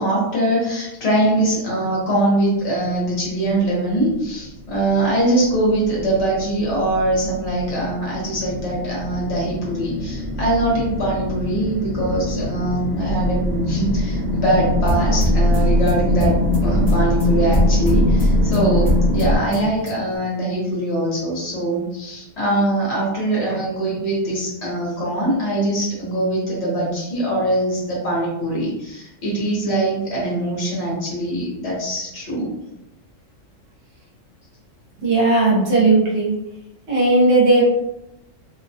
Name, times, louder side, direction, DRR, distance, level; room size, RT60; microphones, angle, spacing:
voice 1, 0.0-16.4 16.6-32.5, right 1 dB, 55° left, -5 dB, 1.1 m, -22 dB
sound 1, 4.1-19.4, left 1 dB, 25° right, 1.1 m, -22 dB
sound 2, 14.9-20.2, equal, 20° left, 0.8 m, -29 dB
voice 2, 35.0-36.3 36.9-37.6, right 2 dB, 60° right, -5 dB, 1.1 m, -16 dB
2.6 x 2.2 x 2.7 m, 0.88 s
omnidirectional pair, 1.4 m